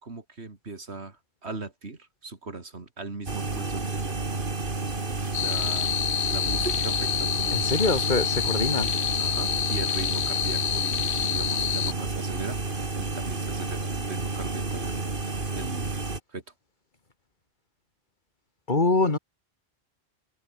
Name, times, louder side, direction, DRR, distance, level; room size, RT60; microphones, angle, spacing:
voice 1, 0.0-4.5 5.4-5.9 6.3-8.2 9.1-15.1 15.5-16.0 16.3-16.4, right 3 dB, 80° right, 2.9 m, -38 dB
sound 1, 3.3-16.2, right 3 dB, 55° right, 2.5 m, -31 dB
sound 2, 5.3-11.9, left 10 dB, 80° left, 1.0 m, -28 dB
voice 2, 7.5-8.9 18.7-19.2, left 3 dB, 45° left, 2.7 m, -24 dB
omnidirectional pair, 1.1 m